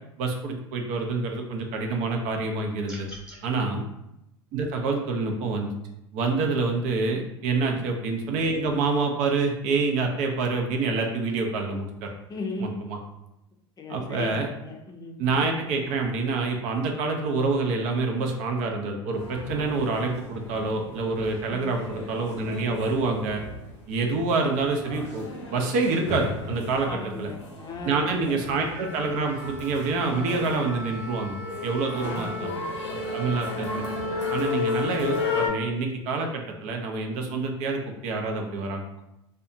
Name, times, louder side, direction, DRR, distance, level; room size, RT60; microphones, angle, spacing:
voice 1, 0.2-3.1 3.4-3.8 4.5-5.7 6.1-12.1 12.6-13.0 13.9-14.5 15.2-23.4 23.9-27.3 27.8-32.5 32.9-33.8 34.3-38.8, right 3 dB, 55° right, 2 dB, 0.5 m, -27 dB
sound 1, 2.8-3.4, right 1 dB, 5° right, 1.0 m, -43 dB
voice 2, 12.3-12.8 13.8-14.3 14.6-15.2 21.5-21.8 26.8-28.6 32.0-32.8, left 3 dB, 25° left, 2 dB, 0.5 m, -37 dB
sound 2, 19.2-35.5, left 3 dB, 85° left, 0.7 m, -34 dB
2.6 x 2.2 x 2.5 m, 0.87 s
hypercardioid pair, 85°, 15 cm